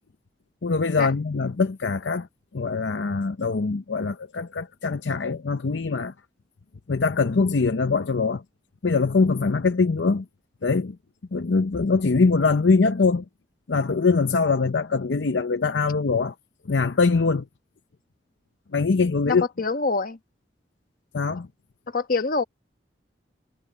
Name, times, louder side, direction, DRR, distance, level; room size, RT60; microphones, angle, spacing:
voice 1, 0.6-2.3 2.5-6.1 6.9-8.4 8.8-10.3 10.6-11.0 11.3-13.2 13.7-16.3 16.7-17.5 18.7-19.5 21.1-21.5, left 4 dB, 75° left, 0.7 m, -23 dB
voice 2, 19.3-20.2 21.9-22.4, left 4 dB, 50° left, 1.3 m, -25 dB
head